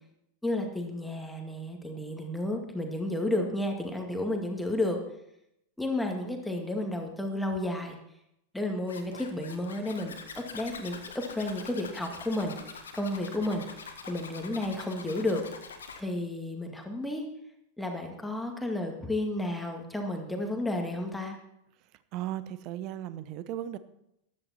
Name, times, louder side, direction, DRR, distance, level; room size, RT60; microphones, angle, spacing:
voice 1, 0.4-5.0 5.8-8.0 8.5-15.5 16.0-17.2 17.8-21.4, left 1 dB, 5° left, 2 dB, 2.1 m, -32 dB
Zipper (clothing), 8.9-16.0, left 5 dB, 70° left, 1.6 m, -45 dB
voice 2, 22.1-23.8, right 12 dB, 40° right, 14 dB, 0.8 m, -36 dB
14.5 x 11.0 x 4.3 m, 0.80 s
figure-of-eight pair, 90°, 0 cm